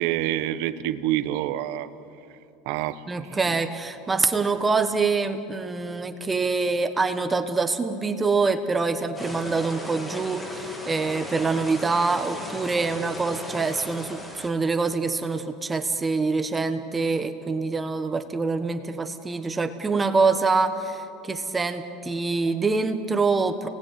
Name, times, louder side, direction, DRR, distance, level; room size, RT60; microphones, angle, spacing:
voice 1, 0.0-1.9 2.6-3.0, right 13 dB, 65° right, 12 dB, 1.2 m, -26 dB
voice 2, 3.1-23.7, right 4 dB, 15° right, 8 dB, 1.2 m, -25 dB
sound 1, 9.1-14.5, left 1 dB, 10° left, 2.3 m, -37 dB
29.5 x 20.5 x 9.3 m, 2.8 s
supercardioid pair, 150°, 0 cm